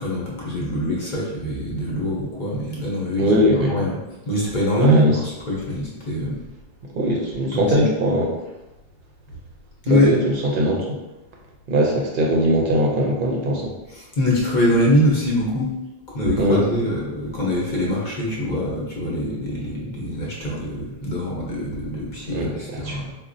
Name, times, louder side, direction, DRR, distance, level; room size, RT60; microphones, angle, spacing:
voice 1, 0.0-4.0 4.2-6.4 7.5-7.8 9.8-10.1 13.9-15.7 16.1-23.1, equal, 50° left, -4 dB, 0.9 m, -23 dB
voice 2, 3.2-3.7 4.8-5.2 6.9-8.3 9.9-11.0 11.7-13.7 16.4-16.6 22.3-23.0, equal, 65° right, -1 dB, 0.7 m, -20 dB
3.9 x 2.2 x 2.5 m, 1.0 s
omnidirectional pair, 1.0 m